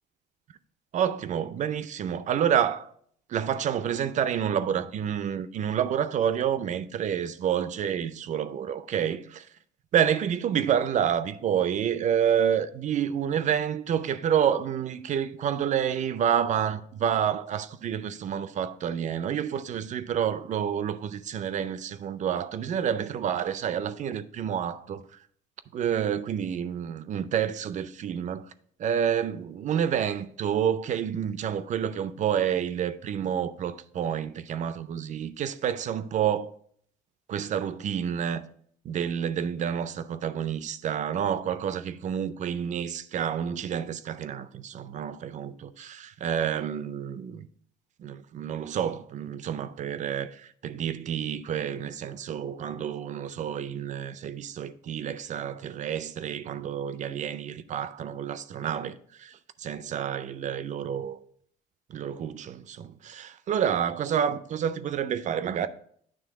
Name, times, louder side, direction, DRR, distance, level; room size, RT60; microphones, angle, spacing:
voice 1, 0.9-2.9 3.3-9.5 9.9-25.0 25.7-28.4 28.8-36.5 37.3-38.4 38.8-47.5 48.0-61.2 61.9-65.7, right 9 dB, 45° right, 0.5 m, -29 dB
9.1 x 3.2 x 4.8 m
cardioid pair, 110°, 17 cm